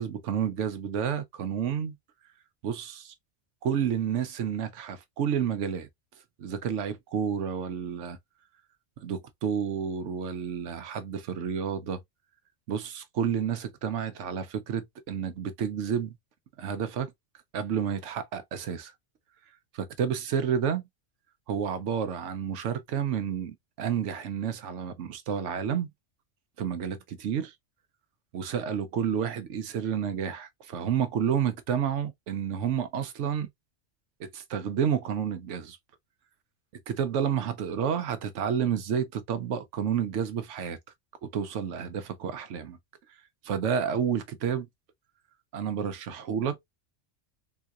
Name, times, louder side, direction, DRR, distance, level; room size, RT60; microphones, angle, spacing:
voice 1, 0.0-2.0 2.6-3.1 3.6-5.9 6.4-8.2 9.0-12.0 12.7-16.2 16.6-17.1 17.5-18.9 19.7-20.9 21.5-25.9 26.6-27.5 28.3-33.5 34.2-35.8 36.9-40.8 41.2-42.8 43.4-44.7 45.5-46.6, right 8 dB, 75° right, 1.0 m, -30 dB
3.8 x 2.8 x 2.3 m
omnidirectional pair, 1.3 m